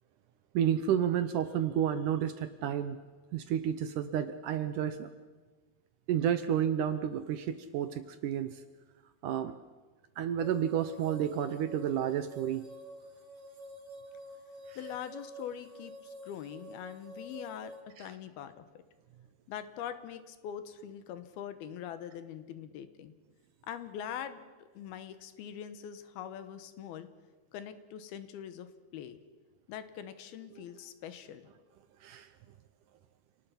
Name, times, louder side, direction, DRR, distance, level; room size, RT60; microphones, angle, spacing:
voice 1, 0.5-3.0 3.3-5.1 6.1-8.6 9.2-9.6 10.2-12.7 14.7-14.8 18.0-18.1 30.6-30.7 32.0-32.3, right 9 dB, 75° right, 10 dB, 2.0 m, -31 dB
sound 1, 10.4-17.8, equal, 35° right, 2.3 m, -49 dB
voice 2, 14.8-17.7 18.0-18.7 19.5-23.1 23.7-27.1 27.5-29.2 29.7-31.5, left 9 dB, 80° left, 11 dB, 3.0 m, -43 dB
28.5 x 19.0 x 5.8 m, 1.4 s
omnidirectional pair, 4.4 m